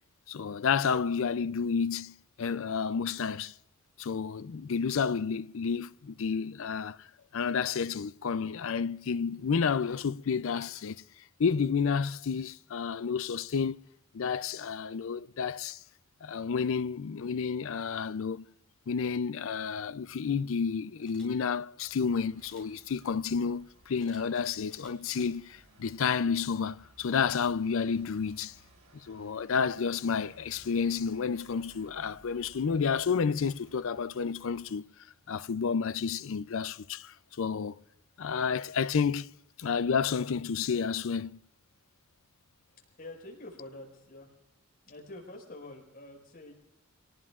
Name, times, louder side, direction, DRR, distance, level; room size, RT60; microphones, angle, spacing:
voice 1, 0.3-3.5 4.0-7.1 7.3-11.0 11.4-13.8 14.1-15.8 16.2-18.5 18.9-28.5 29.0-34.8 35.3-37.8 38.2-39.3 39.6-41.4, left 6 dB, 65° left, 0.4 m, -30 dB
Camera, 21.0-21.3 22.4-22.7 24.0-25.3 25.8-26.0, left 2 dB, 5° left, 4.1 m, -57 dB
sound 1, 21.8-34.8, right 1 dB, 80° right, 6.3 m, -60 dB
voice 2, 43.0-44.4 44.9-46.5, left 2 dB, 45° left, 5.2 m, -46 dB
26.0 x 18.5 x 2.5 m
head